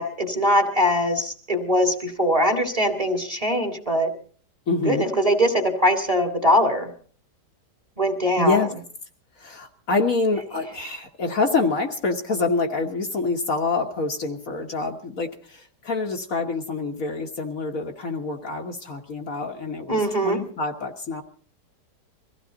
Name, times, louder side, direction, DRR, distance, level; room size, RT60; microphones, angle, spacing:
voice 1, 0.0-4.1 4.8-6.9 8.0-8.6 19.9-20.4, equal, 20° right, 6 dB, 2.1 m, -22 dB
voice 2, 4.7-5.1 8.3-8.7 9.4-21.2, left 3 dB, 55° left, 3 dB, 1.6 m, -26 dB
23.0 x 15.5 x 3.9 m, 0.42 s
omnidirectional pair, 1.9 m